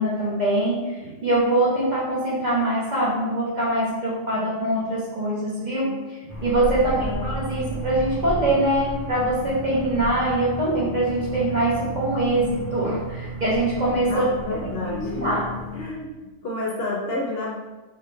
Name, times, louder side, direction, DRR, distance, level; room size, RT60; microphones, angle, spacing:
voice 1, 0.0-6.0 6.4-14.3 14.9-15.4, right 1 dB, 40° right, -6 dB, 0.8 m, -23 dB
voice 2, 5.6-6.0 6.7-7.3 14.1-15.4 15.7-17.6, left 2 dB, 60° left, -3 dB, 0.8 m, -31 dB
sound 1, 6.3-15.8, right 1 dB, 15° left, 0.8 m, -33 dB
3.2 x 2.3 x 3.6 m, 1.2 s
omnidirectional pair, 1.3 m